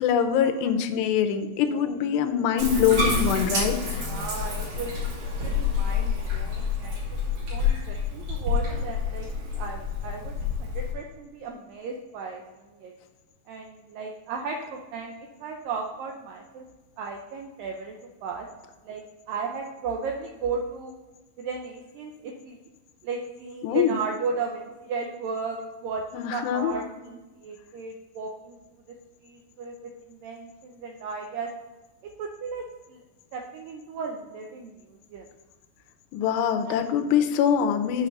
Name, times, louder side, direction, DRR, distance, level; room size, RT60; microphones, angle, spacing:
voice 1, 0.0-4.0 23.6-24.0 26.1-26.7 36.1-38.1, left 8 dB, 90° left, 7 dB, 2.9 m, -24 dB
Bathtub (filling or washing), 2.6-10.9, left 4 dB, 50° right, 3.7 m, -28 dB
voice 2, 4.1-7.2 7.5-9.3 9.6-12.9 13.5-15.1 15.4-16.7 17.0-18.0 18.2-18.5 18.8-20.9 21.4-22.6 23.0-28.6 28.9-29.0 29.2-31.5 32.0-33.0 33.3-34.7 35.1-35.3 36.7-36.8, right 4 dB, 85° right, 2 dB, 2.0 m, -35 dB
8.0 x 5.8 x 5.3 m, 1.2 s
omnidirectional pair, 4.8 m